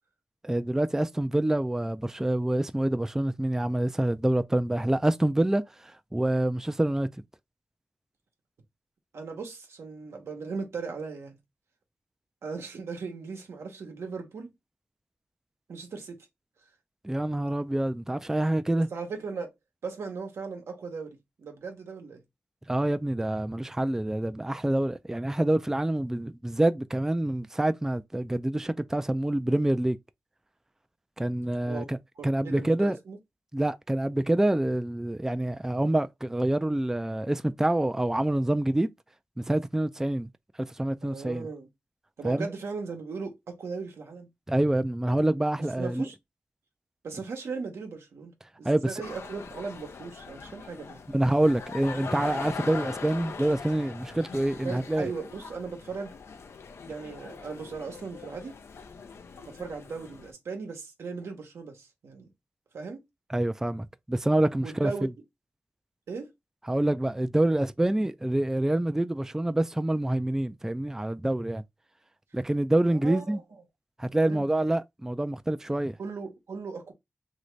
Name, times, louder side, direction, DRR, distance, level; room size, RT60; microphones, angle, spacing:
voice 1, 0.4-7.1 17.0-18.9 22.7-30.0 31.2-32.0 32.2-33.0 33.5-38.9 39.4-40.3 40.7-41.5 42.2-42.5 44.5-46.1 48.6-49.0 51.1-55.1 63.3-65.1 66.7-71.6 72.3-73.4 74.0-76.0, right 1 dB, 10° right, 0.3 m, -26 dB
voice 2, 9.1-11.4 12.4-14.5 15.7-16.2 18.9-19.5 19.8-22.2 31.6-31.9 32.2-33.2 41.0-41.7 42.2-44.3 45.7-46.1 47.0-48.3 48.6-51.0 54.6-56.1 56.9-58.6 59.4-62.3 62.7-63.0 64.6-65.1 66.1-66.3 72.9-73.4 74.2-74.4 76.0-76.9, right 4 dB, 90° right, 0.8 m, -37 dB
sound 1, 49.0-60.3, left 5 dB, 80° left, 0.5 m, -41 dB
2.9 x 2.7 x 3.2 m
cardioid pair, 50°, 4 cm